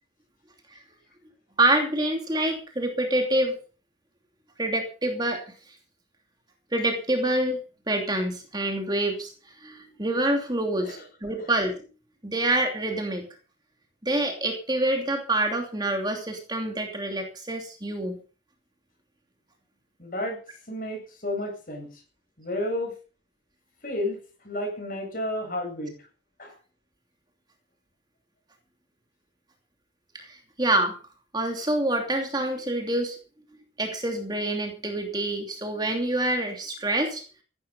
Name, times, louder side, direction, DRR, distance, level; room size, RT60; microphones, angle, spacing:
voice 1, 1.6-3.6 4.6-5.4 6.7-7.6 7.9-9.3 9.6-11.9 12.2-13.3 14.0-18.2 30.1-31.0 31.3-33.2 33.8-37.2, right 1 dB, 20° right, 4 dB, 2.7 m, -26 dB
voice 2, 20.0-20.4 20.7-21.9 22.4-22.9 23.8-24.2 24.4-25.9 26.4-26.5, left 1 dB, 45° left, 3 dB, 7.8 m, -31 dB
16.0 x 11.5 x 5.5 m, 0.37 s
head